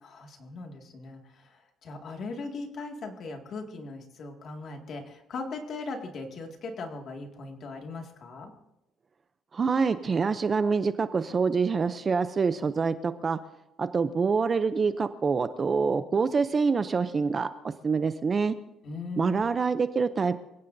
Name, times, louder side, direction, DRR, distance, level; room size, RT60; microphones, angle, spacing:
voice 1, 0.0-8.5 18.8-19.5, left 3 dB, 40° left, 3 dB, 2.1 m, -39 dB
voice 2, 9.5-13.4 13.8-17.5 17.8-18.6 19.2-20.4, right 5 dB, 25° right, 11 dB, 0.5 m, -26 dB
26.5 x 16.5 x 2.7 m, 0.89 s
cardioid pair, 175°, 0 cm